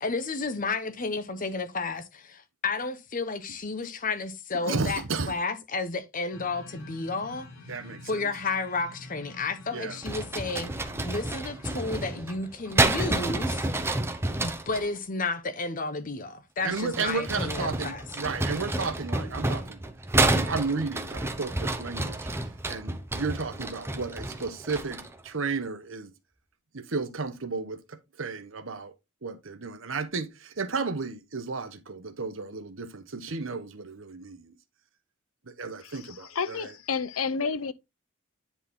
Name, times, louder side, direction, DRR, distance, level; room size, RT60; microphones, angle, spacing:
voice 1, 0.0-7.5 8.0-10.7 11.0-13.7 14.4-18.1, left 3 dB, 40° left, 1.0 m, -32 dB
voice 2, 4.7-5.4 7.7-8.2 9.7-10.0 16.6-19.8 20.3-22.3 22.7-26.1 26.7-28.9 29.2-34.5 35.5-36.7, right 4 dB, 70° right, 1.1 m, -33 dB
sound 1, 6.3-12.7, left 2 dB, 70° left, 3.9 m, -48 dB
sound 2, 10.0-14.9 16.6-25.2, right 2 dB, 10° right, 0.8 m, -29 dB
voice 3, 35.8-37.7, left 5 dB, 85° left, 0.7 m, -31 dB
10.0 x 4.3 x 3.6 m
head